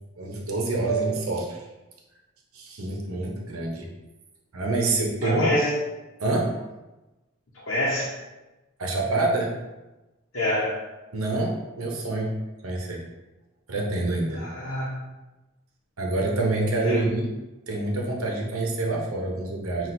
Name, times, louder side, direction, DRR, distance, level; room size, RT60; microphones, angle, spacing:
voice 1, 0.2-1.7 2.5-3.9 4.5-5.6 6.2-6.5 8.8-9.5 11.1-12.3 12.6-13.0 13.7-14.4 16.0-17.3 17.7-19.9, right 2 dB, 85° right, -1 dB, 0.8 m, -26 dB
voice 2, 5.2-5.7 7.7-8.1 10.3-10.8 14.4-15.0 16.8-17.0, left 1 dB, 70° left, -7 dB, 0.8 m, -26 dB
5.8 x 2.5 x 2.6 m, 1.1 s
head